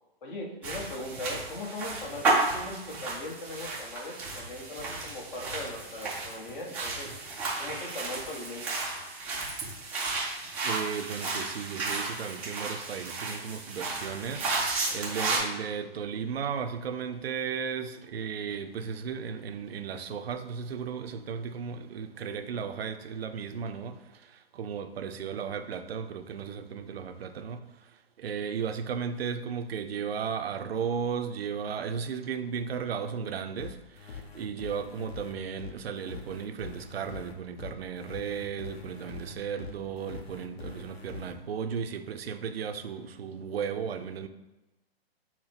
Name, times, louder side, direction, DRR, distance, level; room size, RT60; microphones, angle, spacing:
voice 1, 0.2-7.1 7.6-8.8 14.9-15.1 28.3-28.4, left 1 dB, 50° left, 1.2 m, -40 dB
sound 1, 0.6-15.4, right 3 dB, 5° right, 0.3 m, -33 dB
voice 2, 10.6-44.3, right 7 dB, 70° right, 0.6 m, -35 dB
sound 2, 33.6-41.3, left 5 dB, 75° left, 0.9 m, -44 dB
5.7 x 2.1 x 4.3 m
hypercardioid pair, 135°, 31 cm